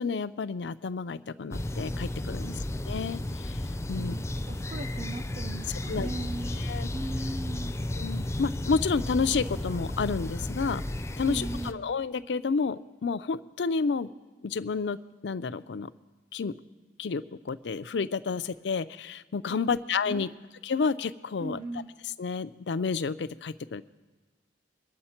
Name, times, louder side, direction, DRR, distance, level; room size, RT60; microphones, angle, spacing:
voice 1, 0.0-2.5 2.9-3.6 3.9-4.1 5.9-6.1 6.6-6.9 7.9-10.8 11.2-14.1 14.4-15.0 15.2-15.9 16.3-16.5 17.0-20.3 20.6-21.6 22.2-23.8, left 5 dB, 70° left, 14 dB, 0.5 m, -30 dB
sound 1, 1.5-11.7, left 1 dB, 15° left, 0.5 m, -33 dB
voice 2, 4.0-6.6 6.9-7.8 11.2-11.9 19.5-19.7 20.0-20.3 21.4-21.9, right 2 dB, 40° right, 7 dB, 0.6 m, -39 dB
23.5 x 7.9 x 4.4 m, 1.3 s
head